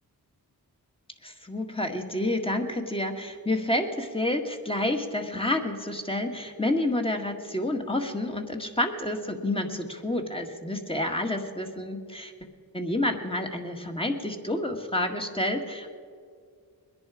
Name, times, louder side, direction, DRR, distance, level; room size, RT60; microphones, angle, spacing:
voice 1, 1.2-12.3 12.7-16.0, left 1 dB, 15° left, 3 dB, 1.7 m, -29 dB
21.5 x 10.5 x 4.9 m, 2.1 s
cardioid pair, 50°, 39 cm